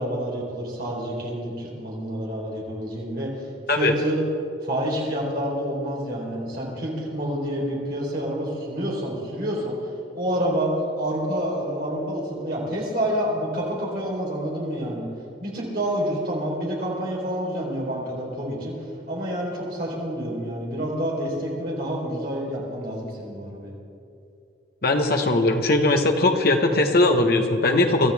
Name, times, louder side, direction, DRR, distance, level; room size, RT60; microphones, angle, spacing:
voice 1, 0.0-4.2 4.6-15.1 15.4-18.8 19.1-23.7, equal, 50° right, -3 dB, 4.0 m, -28 dB
voice 2, 24.8-28.1, left 2 dB, 50° left, 4 dB, 1.2 m, -20 dB
25.0 x 13.0 x 3.6 m, 2.6 s
head